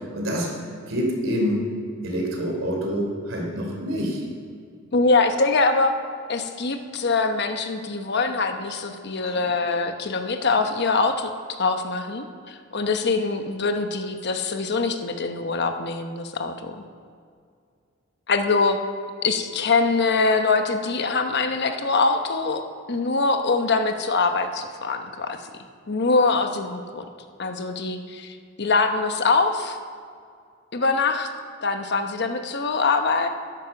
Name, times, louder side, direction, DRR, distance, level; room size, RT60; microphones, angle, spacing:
voice 1, 0.1-0.5 0.9-1.6 2.0-4.2 9.2-9.3, equal, 65° right, 0 dB, 3.4 m, -26 dB
voice 2, 4.9-5.9 6.3-11.3 11.6-16.8 18.3-18.8 19.2-22.6 22.9-25.4 25.9-27.0 27.4-29.8 30.7-31.3 31.6-33.3, left 3 dB, 55° left, 7 dB, 1.0 m, -23 dB
12.5 x 11.0 x 6.0 m, 2.2 s
head